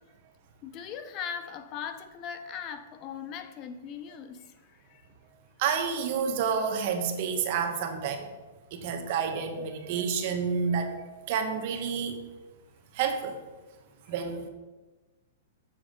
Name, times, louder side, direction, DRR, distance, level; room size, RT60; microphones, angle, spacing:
voice 1, 0.6-5.1 14.0-14.1, left 7 dB, 30° left, 9 dB, 0.5 m, -39 dB
voice 2, 5.6-8.2 8.7-11.0 11.3-12.2 13.0-13.3 14.1-14.5, right 6 dB, 50° right, 5 dB, 1.1 m, -29 dB
7.3 x 7.0 x 3.7 m, 1.2 s
hypercardioid pair, 150°, 0 cm